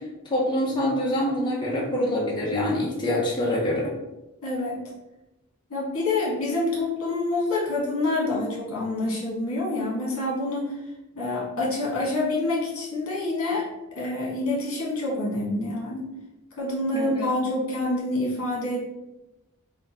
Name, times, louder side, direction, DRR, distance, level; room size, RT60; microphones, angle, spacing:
voice 1, 0.3-3.9 16.9-17.3, left 1 dB, 20° left, -5 dB, 0.7 m, -25 dB
voice 2, 4.4-4.8 5.7-10.7 11.1-13.6 14.0-16.1 16.6-18.9, left 2 dB, 85° left, -3 dB, 1.4 m, -27 dB
3.6 x 2.2 x 4.2 m, 0.96 s
head